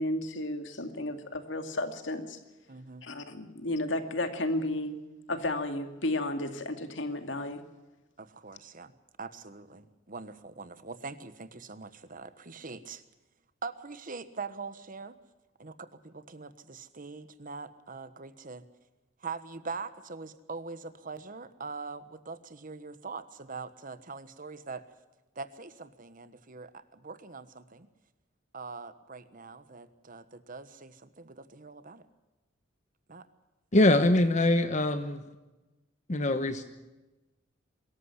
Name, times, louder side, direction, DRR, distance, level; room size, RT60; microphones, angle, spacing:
voice 1, 0.0-2.4 3.0-5.0 5.3-7.6, left 1 dB, 70° left, 7 dB, 2.4 m, -33 dB
voice 2, 2.7-3.0 8.2-8.9 9.2-13.0 13.6-15.2 15.6-18.6 19.2-24.8 25.3-27.9 28.5-32.0 33.1-33.2, right 4 dB, 45° right, 12 dB, 1.3 m, -43 dB
voice 3, 33.7-35.2 36.1-36.6, left 1 dB, 40° left, 9 dB, 1.1 m, -23 dB
23.5 x 14.0 x 9.9 m, 1.1 s
head